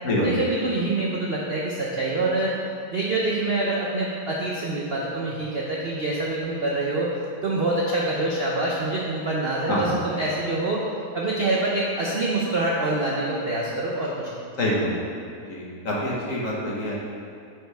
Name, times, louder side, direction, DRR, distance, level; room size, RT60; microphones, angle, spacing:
voice 1, 0.2-2.5 2.9-7.1 7.4-10.9 11.1-14.3, right 2 dB, 55° right, -4 dB, 0.6 m, -25 dB
voice 2, 14.6-14.9 15.4-17.0, left 1 dB, 55° left, -5 dB, 1.6 m, -26 dB
8.8 x 4.9 x 3.4 m, 2.4 s
omnidirectional pair, 1.8 m